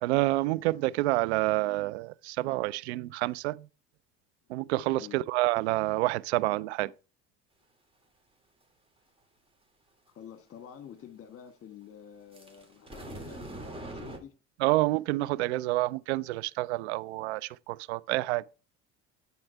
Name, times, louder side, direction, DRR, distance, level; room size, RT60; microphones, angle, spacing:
voice 1, 0.0-3.6 4.5-6.9 14.6-18.5, right 19 dB, 85° right, 0.5 m, -28 dB
voice 2, 10.1-14.3, left 9 dB, 45° left, 1.7 m, -48 dB
sound 1, 12.3-14.2, right 1 dB, 15° right, 2.9 m, -42 dB
11.0 x 4.5 x 4.5 m
hypercardioid pair, 75°, 32 cm